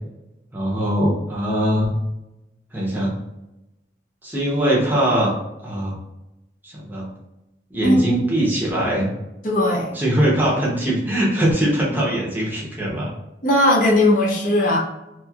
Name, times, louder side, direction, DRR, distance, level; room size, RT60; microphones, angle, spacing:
voice 1, 0.5-1.9 2.7-3.2 4.2-5.3 5.6-6.0 6.6-7.1 7.7-9.1 9.9-13.1, right 1 dB, 10° right, -5 dB, 0.7 m, -21 dB
voice 2, 7.8-8.1 9.4-9.9 13.4-14.8, left 1 dB, 45° left, -2 dB, 0.6 m, -18 dB
3.0 x 2.7 x 2.3 m, 0.93 s
head